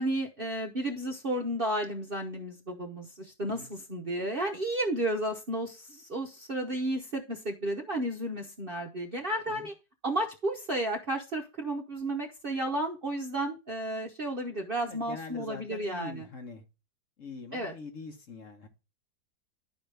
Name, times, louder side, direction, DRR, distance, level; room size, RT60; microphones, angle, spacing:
voice 1, 0.0-9.7 10.0-16.3 17.5-17.7, right 1 dB, 40° right, 0.8 m, -32 dB
voice 2, 14.8-16.6 17.2-18.7, left 4 dB, 50° left, 1.3 m, -44 dB
11.5 x 5.0 x 3.3 m
omnidirectional pair, 1.9 m